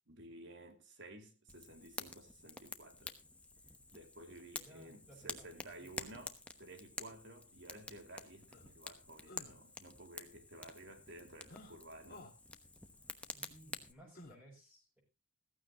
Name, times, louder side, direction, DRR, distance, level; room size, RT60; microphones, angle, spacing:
voice 1, 0.1-3.2 3.9-12.3, right 1 dB, 55° right, 2.6 m, -54 dB
Fire, 1.5-13.9, left 2 dB, 5° left, 1.0 m, -50 dB
voice 2, 4.5-5.9 13.3-15.0, right 1 dB, 10° right, 6.8 m, -60 dB
sound 1, 7.7-7.8 8.5-8.7 9.2-9.6 11.5-11.7 12.1-12.3 14.1-14.4, left 2 dB, 45° left, 2.0 m, -54 dB
15.0 x 14.5 x 2.9 m
head